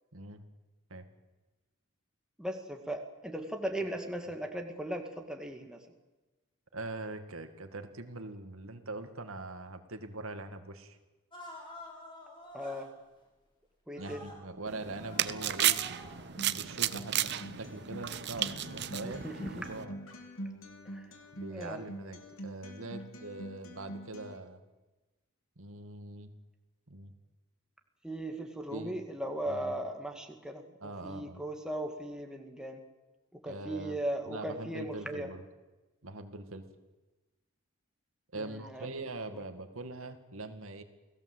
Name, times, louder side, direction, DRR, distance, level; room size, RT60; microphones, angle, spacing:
voice 1, 2.4-5.8 12.5-12.9 13.9-14.3 19.0-19.6 20.9-21.0 21.5-21.8 28.0-32.8 33.3-35.3 38.3-39.0 39.3-39.4, right 1 dB, 5° right, 3 dB, 2.1 m, -38 dB
voice 2, 6.7-11.0 14.0-16.0 16.5-19.2 19.5-20.0 21.3-24.6 25.6-26.3 26.9-27.1 28.7-29.0 29.5-29.7 30.8-31.4 33.5-34.0 34.3-35.4 36.0-36.6 38.3-40.8, right 2 dB, 75° right, 7 dB, 2.2 m, -42 dB
sound 1, 11.3-12.8 14.0-14.4 14.8-16.5 17.2-17.3, left 1 dB, 20° left, 6.2 m, -49 dB
sound 2, 14.7-19.8, right 12 dB, 50° right, 0.8 m, -33 dB
Acoustic guitar, 16.4-24.4, equal, 70° left, 3.5 m, -45 dB
29.0 x 18.0 x 8.1 m, 1.1 s
head